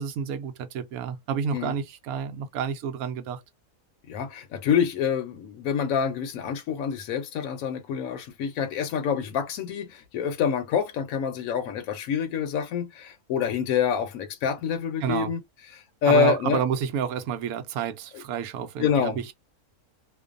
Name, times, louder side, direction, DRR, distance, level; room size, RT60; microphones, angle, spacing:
voice 1, 0.0-3.4 15.0-15.3 16.1-19.3, right 7 dB, 75° right, 1.0 m, -29 dB
voice 2, 4.1-15.4 15.7-16.6 18.8-19.2, left 7 dB, 70° left, 0.9 m, -26 dB
2.5 x 2.2 x 2.4 m
omnidirectional pair, 1.6 m